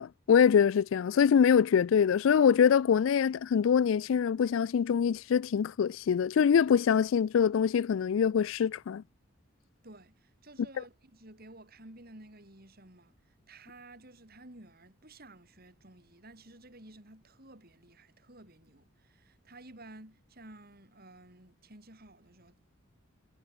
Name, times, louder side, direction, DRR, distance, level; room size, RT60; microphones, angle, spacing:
voice 1, 0.0-9.0, left 7 dB, 70° left, 0.3 m, -24 dB
voice 2, 9.8-22.8, right 2 dB, 50° right, 5.7 m, -53 dB
head